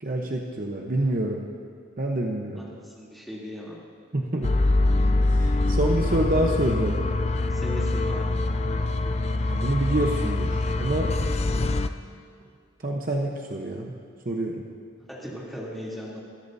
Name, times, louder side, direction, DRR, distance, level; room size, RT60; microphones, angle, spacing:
voice 1, 0.0-1.4 2.0-2.7 4.1-4.5 5.2-7.0 9.5-11.1 12.8-13.9 14.2-14.6, right 1 dB, 45° right, 1 dB, 0.9 m, -27 dB
voice 2, 2.5-3.8 7.5-8.3 15.2-16.2, equal, ahead, -8 dB, 3.0 m, -37 dB
sound 1, 4.4-11.9, left 2 dB, 35° left, 0.4 m, -24 dB
21.5 x 14.0 x 2.7 m, 2.2 s
head